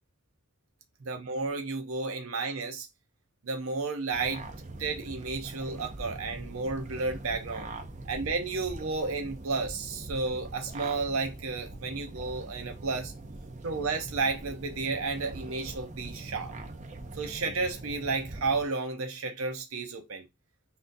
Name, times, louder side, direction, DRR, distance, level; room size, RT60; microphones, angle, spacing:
voice 1, 1.0-2.9 3.4-4.5 4.8-7.7 8.1-13.1 13.6-16.5 17.1-20.3, right 3 dB, 75° right, 0.7 m, -32 dB
sound 1, 4.1-18.7, right 2 dB, 35° right, 0.6 m, -42 dB
5.9 x 2.7 x 2.6 m
head